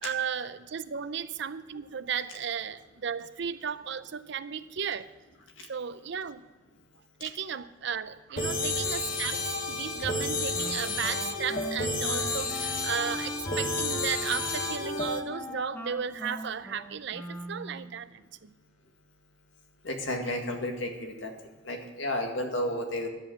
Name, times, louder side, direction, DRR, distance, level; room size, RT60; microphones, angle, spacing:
voice 1, 0.0-5.1 5.7-6.4 7.2-18.5, right 7 dB, 65° right, 13 dB, 0.6 m, -35 dB
sound 1, 8.4-15.2, left 2 dB, 45° left, 1.2 m, -31 dB
Wind instrument woodwind instrument, 10.6-18.0, equal, 10° left, 1.0 m, -40 dB
voice 2, 19.8-21.3 21.7-23.1, left 1 dB, 80° left, 2 dB, 2.0 m, -32 dB
11.0 x 7.9 x 7.2 m, 1.2 s
head